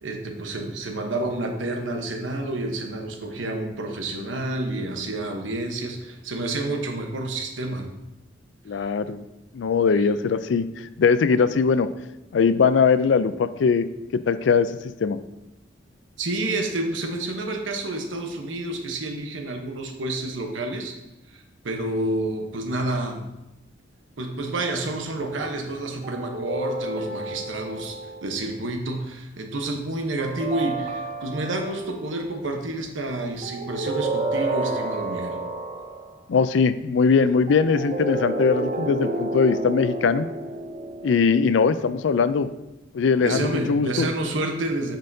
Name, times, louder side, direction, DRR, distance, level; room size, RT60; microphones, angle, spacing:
voice 1, 0.0-7.9 16.2-20.9 21.3-23.2 24.2-35.4 43.2-45.0, right 2 dB, 90° right, 4 dB, 1.0 m, -29 dB
voice 2, 8.7-9.2 9.5-11.9 12.3-13.9 14.3-14.7 15.0-15.2 36.3-40.3 41.0-42.5 42.9-44.1, left 5 dB, 70° left, 13 dB, 0.4 m, -21 dB
sound 1, 26.0-28.5 30.2-32.0 33.4-36.1 37.5-42.0, right 2 dB, 35° right, 0.6 m, -30 dB
8.8 x 5.5 x 2.7 m, 0.94 s
head